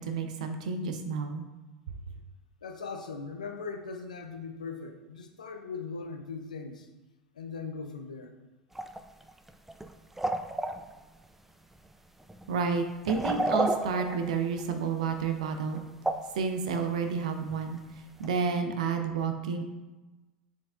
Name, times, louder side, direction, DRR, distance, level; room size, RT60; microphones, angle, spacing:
voice 1, 0.0-1.4 12.5-15.8 16.3-17.8 18.2-19.6, right 5 dB, 70° right, 6 dB, 0.4 m, -30 dB
voice 2, 2.6-6.9 7.3-8.3, left 4 dB, 85° left, 5 dB, 0.4 m, -39 dB
sound 1, 8.7-9.0 9.3-9.9 10.2-10.8 11.8-11.9 12.3-12.5 13.0-14.6 15.5-15.8 16.0-16.4 17.1-17.2 17.5-17.6 18.2-18.3, right 2 dB, 5° right, 0.3 m, -31 dB
4.6 x 4.2 x 2.4 m, 1.1 s
hypercardioid pair, 85°, 4 cm